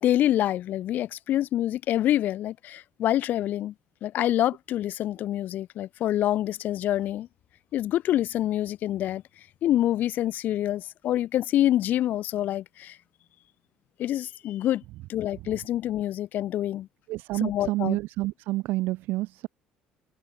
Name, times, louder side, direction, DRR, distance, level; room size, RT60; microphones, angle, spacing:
voice 1, 0.0-3.7 4.0-7.3 7.7-9.2 9.6-13.0 14.0-14.8 15.1-16.9 17.4-18.0, left 12 dB, 60° left, 0.4 m, -26 dB
voice 2, 17.1-19.5, right 18 dB, 75° right, 0.3 m, -29 dB
supercardioid pair, 90°, 3 cm